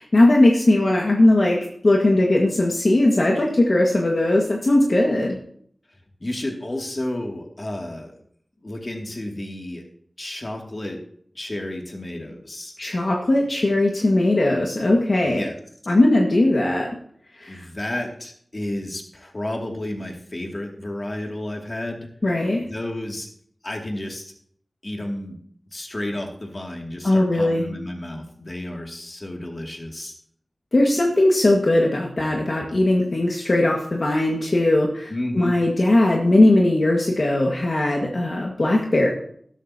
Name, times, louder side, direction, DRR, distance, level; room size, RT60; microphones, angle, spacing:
voice 1, 0.0-5.4 12.8-15.4 15.9-16.9 17.4-17.6 22.2-22.6 27.0-27.7 30.7-39.1, left 1 dB, 60° left, -1 dB, 1.8 m, -19 dB
voice 2, 6.2-8.1 8.6-9.8 10.2-11.0 11.3-12.7 15.2-15.6 17.5-22.1 22.6-23.3 23.6-24.3 24.8-25.4 25.7-30.1 35.1-35.5, left 1 dB, 45° left, 1 dB, 2.5 m, -31 dB
13.0 x 12.5 x 2.9 m, 0.63 s
cardioid pair, 40°, 0 cm